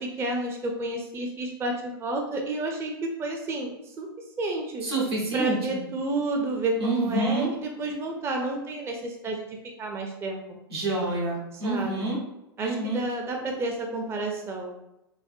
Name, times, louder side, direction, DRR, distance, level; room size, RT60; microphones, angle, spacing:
voice 1, 0.0-2.9 3.2-3.7 4.0-4.1 4.4-4.9 5.3-9.5 9.8-10.6 11.6-12.1 12.6-14.8, right 2 dB, 20° right, 2 dB, 0.4 m, -30 dB
voice 2, 4.8-5.9 6.8-7.5 10.7-12.2 12.6-13.0, right 2 dB, 85° right, -4 dB, 1.3 m, -28 dB
3.9 x 2.1 x 2.6 m, 0.89 s
hypercardioid pair, 100°, 13 cm